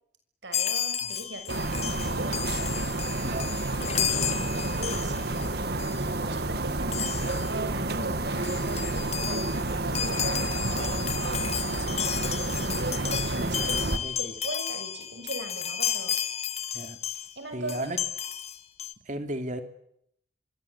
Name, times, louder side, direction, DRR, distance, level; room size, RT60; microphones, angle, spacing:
voice 1, 0.4-2.7 3.8-9.5 9.8-12.3 12.6-16.2 17.3-17.9, right 2 dB, 75° right, 8 dB, 6.8 m, -40 dB
Chime, 0.5-5.5 5.8-6.0 6.9-7.5 8.1-8.2 8.3-17.3 17.7-18.9, left 9 dB, 35° left, 1.5 m, -33 dB
sound 1, 1.5-14.0, right 2 dB, 60° right, 1.8 m, -30 dB
voice 2, 14.0-14.3 16.7-17.0 17.5-18.0 19.1-19.6, right 1 dB, 45° right, 7 dB, 3.0 m, -35 dB
26.5 x 25.0 x 8.4 m, 0.73 s
head